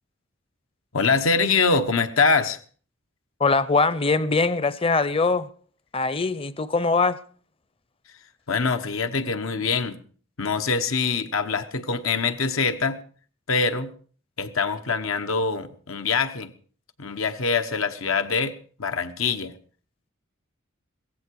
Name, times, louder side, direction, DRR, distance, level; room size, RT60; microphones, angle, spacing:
voice 1, 0.9-2.6 8.5-10.0 10.4-13.0 13.5-13.9 14.4-16.5 17.0-18.5 18.8-19.5, left 4 dB, 90° left, 1.2 m, -24 dB
voice 2, 3.4-5.5 5.9-7.2, left 3 dB, 25° left, 0.6 m, -22 dB
16.5 x 15.5 x 4.7 m
head